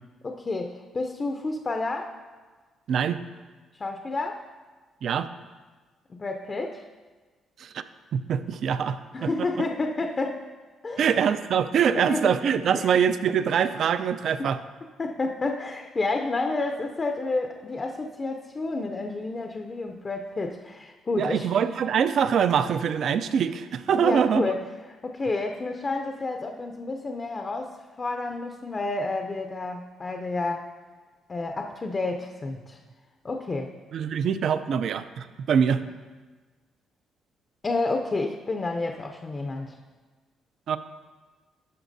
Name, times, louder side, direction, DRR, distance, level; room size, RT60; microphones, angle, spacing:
voice 1, 0.2-2.1 3.7-4.4 6.1-6.8 9.1-10.5 10.8-11.2 11.9-12.9 14.4-14.5 15.0-21.5 24.0-24.6 25.0-30.7 31.3-32.8 33.2-33.7 37.6-39.8, left 3 dB, 30° left, 4 dB, 0.5 m, -30 dB
voice 2, 2.9-3.2 5.0-5.3 7.6-7.8 8.1-9.3 11.0-14.6 21.2-24.4 33.9-35.8 40.7-40.8, right 7 dB, 65° right, 12 dB, 0.3 m, -24 dB
11.0 x 5.8 x 2.6 m, 1.4 s
cardioid pair, 90°, 0 cm